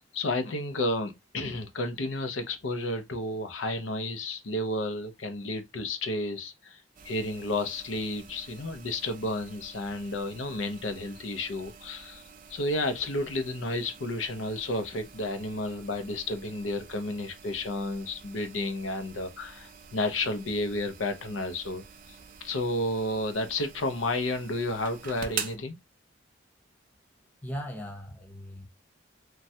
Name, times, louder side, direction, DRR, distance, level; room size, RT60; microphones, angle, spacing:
voice 1, 0.0-12.2 12.5-21.8 22.4-25.8, left 2 dB, 85° left, 0.6 m, -31 dB
sound 1, 7.0-25.6, right 7 dB, 45° right, 0.4 m, -46 dB
voice 2, 27.4-28.7, equal, 10° left, 0.6 m, -38 dB
3.2 x 2.2 x 2.7 m
head